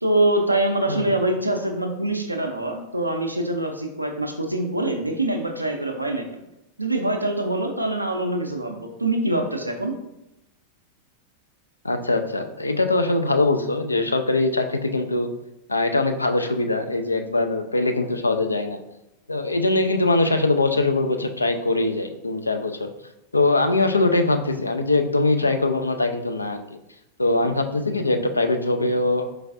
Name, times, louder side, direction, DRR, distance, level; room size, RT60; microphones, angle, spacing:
voice 1, 0.0-6.3 6.8-10.0, right 1 dB, 85° right, 3 dB, 0.5 m, -24 dB
voice 2, 11.8-15.3 15.7-18.8 19.3-22.9 23.3-26.6 27.2-29.3, left 2 dB, 80° left, 6 dB, 0.3 m, -22 dB
4.5 x 3.2 x 2.5 m, 0.89 s
figure-of-eight pair, 90°, 0 cm